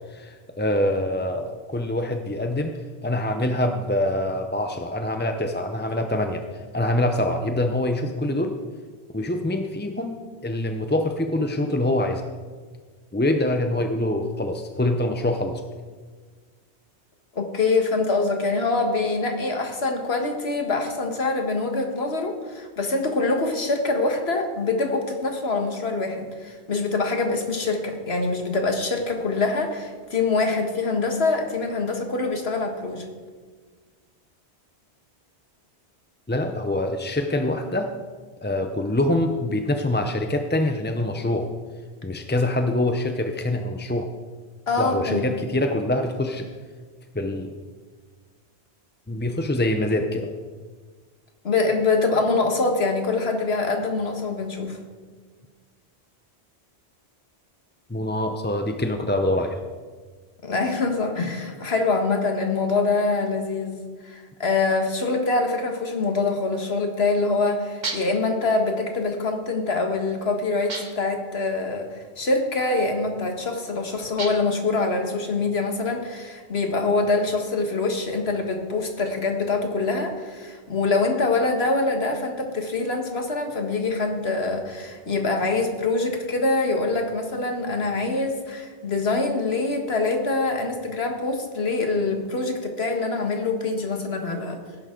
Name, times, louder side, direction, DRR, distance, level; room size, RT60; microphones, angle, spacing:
voice 1, 0.1-2.7 3.0-8.5 9.1-12.2 13.1-15.6 36.3-37.9 38.4-41.5 42.0-44.1 44.8-46.5 47.1-47.5 49.1-50.3 57.9-59.6, left 1 dB, 15° left, 5 dB, 0.5 m, -25 dB
voice 2, 17.3-33.0 44.7-45.3 51.4-54.8 60.4-94.6, left 3 dB, 65° left, 4 dB, 1.8 m, -24 dB
sound 1, 67.8-68.3 70.7-71.2 74.2-74.6, right 3 dB, 45° right, 1.4 m, -33 dB
18.0 x 11.0 x 3.8 m, 1.5 s
omnidirectional pair, 1.1 m